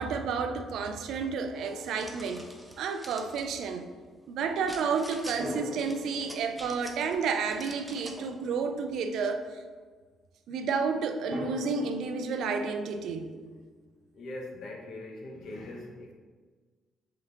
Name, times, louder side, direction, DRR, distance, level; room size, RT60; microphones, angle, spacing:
voice 1, 0.0-2.4 2.8-3.9 4.3-9.5 10.5-13.3, right 5 dB, 75° right, 7 dB, 0.4 m, -31 dB
Drum, 1.5-2.9 5.4-8.4 11.3-14.2, left 1 dB, 60° right, 1.1 m, -42 dB
sound 1, 1.6-3.5 4.7-5.4 5.8-7.2 7.5-8.3, right 1 dB, 10° right, 0.6 m, -47 dB
voice 2, 14.1-16.1, left 2 dB, 65° left, 0 dB, 0.9 m, -41 dB
3.8 x 3.7 x 3.4 m, 1.4 s
cardioid pair, 90°, 0 cm